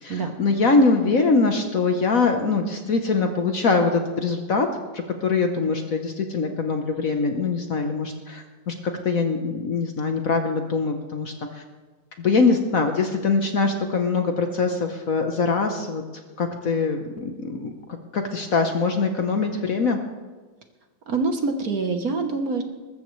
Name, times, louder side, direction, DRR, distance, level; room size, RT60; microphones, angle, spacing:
voice 1, 0.0-4.7 4.9-11.6 12.2-16.0 16.4-20.0, left 4 dB, 50° left, 5 dB, 1.2 m, -23 dB
voice 2, 21.1-22.6, right 3 dB, 55° right, 5 dB, 1.4 m, -25 dB
20.5 x 14.0 x 3.2 m, 1.3 s
omnidirectional pair, 2.2 m